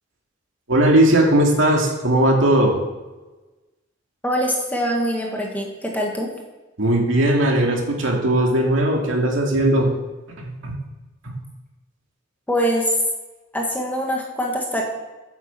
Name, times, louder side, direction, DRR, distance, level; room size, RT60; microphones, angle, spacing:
voice 1, 0.7-2.8 6.8-9.9 10.4-10.7 11.2-11.4, right 1 dB, 75° right, 0 dB, 2.4 m, -18 dB
voice 2, 4.2-6.3 12.5-13.0 13.5-14.8, equal, 10° left, -1 dB, 1.9 m, -23 dB
9.5 x 7.2 x 7.2 m, 1.2 s
head